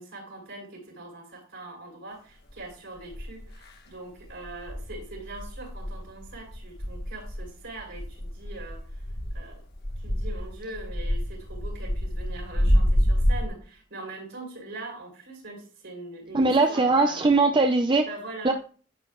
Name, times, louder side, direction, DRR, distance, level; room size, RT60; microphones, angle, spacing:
voice 1, 0.0-8.8 9.3-9.6 10.0-17.2 18.1-18.5, right 2 dB, 65° right, 0 dB, 4.5 m, -42 dB
sound 1, 2.5-2.6 3.1-3.7 4.2-13.4, equal, 55° left, 1.4 m, -28 dB
voice 2, 16.3-18.1 18.4-18.5, right 3 dB, 25° right, 5 dB, 0.6 m, -20 dB
11.0 x 7.5 x 2.4 m, 0.38 s
head